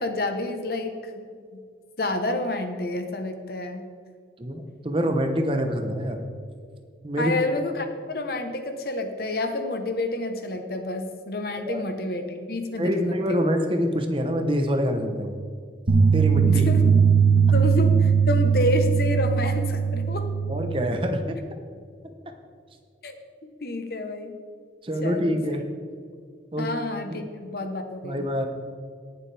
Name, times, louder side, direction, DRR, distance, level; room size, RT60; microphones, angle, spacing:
voice 1, 0.0-1.6 2.0-3.8 7.2-13.5 16.4-16.8 17.5-20.3 23.0-23.1 23.6-24.3 25.0-25.3 26.6-28.2, left 2 dB, 55° left, 6 dB, 1.0 m, -29 dB
voice 2, 4.4-6.2 7.0-7.3 11.7-11.8 12.8-15.4 16.1-16.6 20.5-21.4 24.8-25.7 26.5-26.7 28.0-28.5, equal, 30° right, 5 dB, 0.9 m, -25 dB
sound 1, 15.9-20.9, right 6 dB, 80° right, 1.1 m, -20 dB
19.0 x 7.3 x 3.4 m, 2.1 s
head